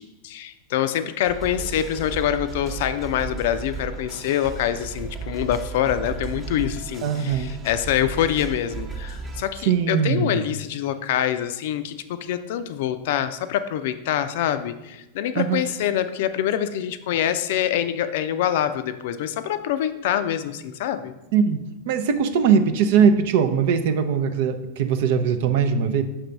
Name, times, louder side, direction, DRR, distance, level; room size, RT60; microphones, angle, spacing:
voice 1, 0.0-21.1, left 10 dB, 65° left, 11 dB, 0.4 m, -25 dB
sound 1, 1.3-9.4, right 5 dB, 30° right, 1.0 m, -35 dB
voice 2, 7.0-7.5 9.7-10.4 15.4-15.6 21.3-26.0, right 7 dB, 65° right, 9 dB, 0.5 m, -21 dB
5.8 x 3.2 x 5.2 m, 0.98 s
hypercardioid pair, 100°, 0 cm